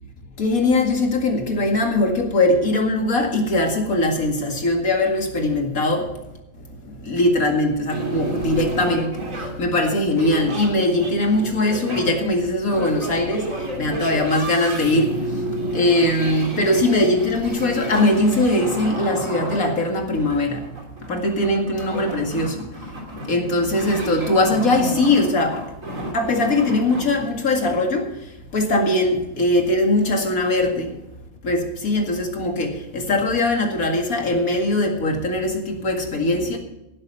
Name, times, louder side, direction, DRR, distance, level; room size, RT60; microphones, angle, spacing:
voice 1, 0.4-6.1 7.0-9.1 9.6-13.5 13.8-15.1 15.7-20.7 21.1-22.7 23.2-25.7 26.1-28.1 28.5-30.9 31.4-36.6, left 2 dB, 85° left, 2 dB, 2.5 m, -21 dB
sound 1, 7.9-27.0, right 1 dB, 70° right, 3.2 m, -30 dB
17.0 x 7.8 x 5.6 m, 0.91 s
omnidirectional pair, 1.4 m